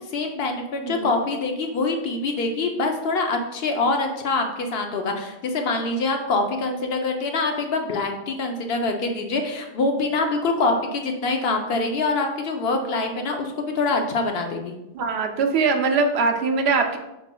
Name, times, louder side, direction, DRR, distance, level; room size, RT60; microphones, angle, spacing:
voice 1, 0.1-14.7, left 3 dB, 60° left, 3 dB, 0.9 m, -25 dB
voice 2, 14.9-17.0, right 4 dB, 70° right, 4 dB, 0.8 m, -22 dB
5.4 x 4.3 x 2.2 m, 0.93 s
omnidirectional pair, 1.2 m